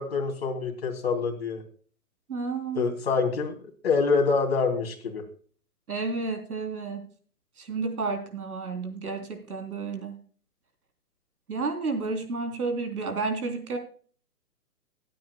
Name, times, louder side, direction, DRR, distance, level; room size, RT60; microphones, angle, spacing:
voice 1, 0.0-1.6 2.7-3.5 3.8-5.2, left 4 dB, 40° left, 3 dB, 2.8 m, -26 dB
voice 2, 2.3-2.9 5.9-7.0 7.6-10.2 11.5-13.8, right 4 dB, 75° right, 6 dB, 3.6 m, -31 dB
21.5 x 9.2 x 2.3 m, 0.43 s
hypercardioid pair, 180°, 45 cm